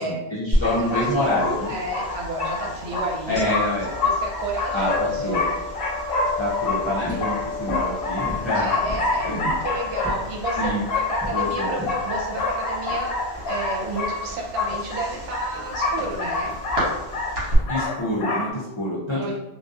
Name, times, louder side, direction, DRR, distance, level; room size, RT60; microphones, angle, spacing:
voice 1, 0.0-1.7 3.3-3.9 4.7-4.9 5.2-5.4 6.4-8.8 9.2-9.5 10.6-10.8 11.3-11.7 17.7-19.3, left 1 dB, 40° left, -9 dB, 0.4 m, -27 dB
sound 1, 0.5-17.6, left 1 dB, 65° right, 1.1 m, -33 dB
sound 2, 0.6-18.5, left 3 dB, 60° left, 0.8 m, -27 dB
voice 2, 0.6-3.5 4.0-5.4 7.1-7.2 8.5-9.4 9.6-16.5 19.1-19.3, right 3 dB, 85° right, 0 dB, 0.9 m, -32 dB
sound 3, 7.0-17.1, left 1 dB, 10° right, 0.9 m, -38 dB
2.5 x 2.2 x 2.3 m, 0.98 s
omnidirectional pair, 1.2 m